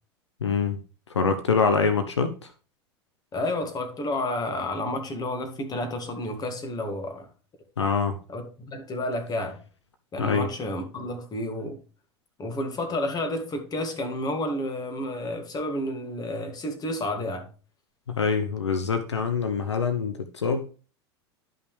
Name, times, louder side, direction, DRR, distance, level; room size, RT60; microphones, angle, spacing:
voice 1, 0.4-0.8 1.1-2.3 7.8-8.2 10.2-10.5 18.1-20.7, left 5 dB, 80° left, 0.8 m, -24 dB
voice 2, 3.3-7.3 8.3-9.6 10.1-11.8 12.4-17.5, left 1 dB, 25° left, 2.2 m, -30 dB
11.5 x 5.5 x 3.3 m
figure-of-eight pair, 80°, 14 cm